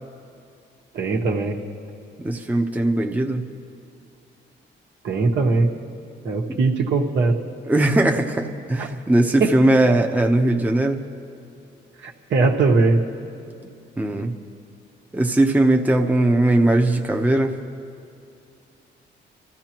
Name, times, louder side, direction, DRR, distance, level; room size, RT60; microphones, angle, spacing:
voice 1, 0.9-1.6 5.0-5.7 6.2-7.4 8.8-8.9 9.4-9.5 12.0-13.0, right 3 dB, 70° right, 1 dB, 1.3 m, -20 dB
voice 2, 2.2-3.4 6.5-6.6 7.6-11.0 14.0-14.3 15.1-17.6, right 1 dB, 10° right, 3 dB, 0.8 m, -19 dB
25.5 x 14.0 x 3.0 m, 2.5 s
cardioid pair, 90°, 20 cm